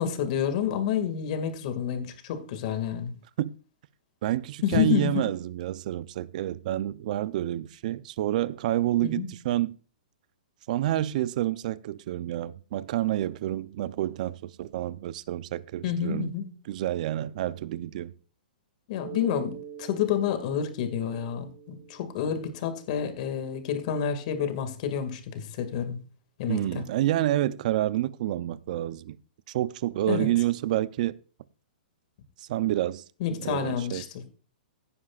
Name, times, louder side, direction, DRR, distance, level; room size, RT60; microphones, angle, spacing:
voice 1, 0.0-3.1 4.6-5.2 9.0-9.3 15.8-16.5 18.9-26.0 26.4-26.8 30.1-30.3 33.2-34.3, left 8 dB, 50° left, 2.1 m, -29 dB
voice 2, 4.2-9.7 10.7-16.3 16.7-18.1 26.5-29.2 29.5-31.2 32.4-33.0 33.4-34.0, right 13 dB, 50° right, 0.6 m, -28 dB
Mallet percussion, 19.0-23.4, right 9 dB, 75° right, 1.7 m, -45 dB
16.5 x 9.8 x 2.5 m
hypercardioid pair, 140°, 5 cm